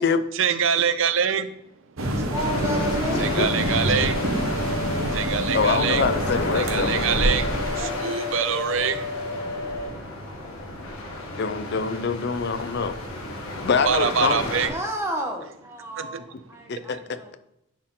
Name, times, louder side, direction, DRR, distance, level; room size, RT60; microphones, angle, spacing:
voice 1, 0.4-1.5 3.2-4.2 5.1-6.0 6.5-7.5 7.7-9.1 13.9-14.7 16.0-16.2, right 7 dB, 70° right, 13 dB, 0.5 m, -24 dB
sound 1, 2.0-7.8, right 1 dB, 85° right, 1.2 m, -26 dB
sound 2, 2.3-14.7, left 2 dB, 80° left, 1.9 m, -33 dB
sound 3, 2.3-9.9, left 4 dB, 15° left, 1.0 m, -32 dB
voice 2, 2.3-3.3 7.8-7.9 14.6-17.4, right 1 dB, 15° right, 1 dB, 1.2 m, -32 dB
voice 3, 3.1-3.5 3.8-3.9 5.5-7.0 11.4-13.0 13.6-14.5 16.7-17.4, left 4 dB, 55° left, 11 dB, 0.5 m, -25 dB
10.0 x 4.3 x 3.8 m, 0.82 s
head